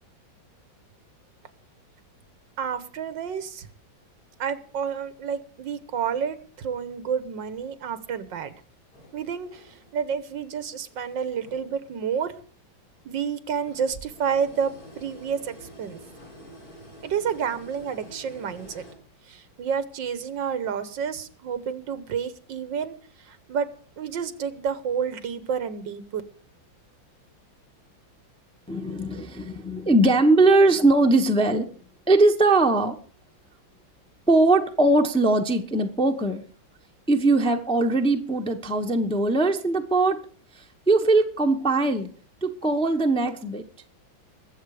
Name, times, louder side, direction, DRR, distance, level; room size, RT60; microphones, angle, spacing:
voice 1, 2.6-3.7 4.4-8.6 9.1-9.6 9.9-12.3 13.1-16.0 17.0-18.8 19.3-23.0 23.3-23.7 24.0-26.2, right 7 dB, 70° right, 13 dB, 1.8 m, -29 dB
sound 1, 8.9-10.2 10.6-12.2 12.5-12.6 13.4-18.9, right 1 dB, 50° left, 4.2 m, -48 dB
voice 2, 28.7-31.7 32.1-32.9 34.3-36.4 37.1-40.2 40.6-42.1 42.4-43.7, right 2 dB, 5° left, 5 dB, 0.7 m, -20 dB
21.5 x 7.7 x 4.9 m, 0.43 s
omnidirectional pair, 2.1 m